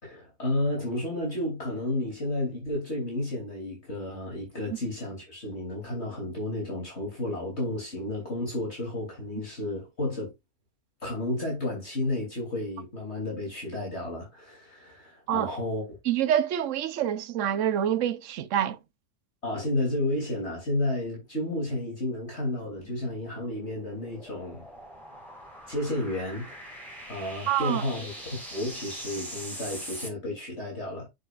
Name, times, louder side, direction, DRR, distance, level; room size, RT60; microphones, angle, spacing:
voice 1, 0.0-10.3 11.0-15.8 19.4-24.6 25.7-26.8 27.0-31.1, left 1 dB, 45° left, 3.3 m, -32 dB
voice 2, 16.1-18.8 27.5-27.8, right 10 dB, 60° right, 1.0 m, -26 dB
sound 1, 22.7-30.1, equal, ahead, 4.5 m, -43 dB
7.4 x 6.8 x 2.4 m
omnidirectional pair, 1.5 m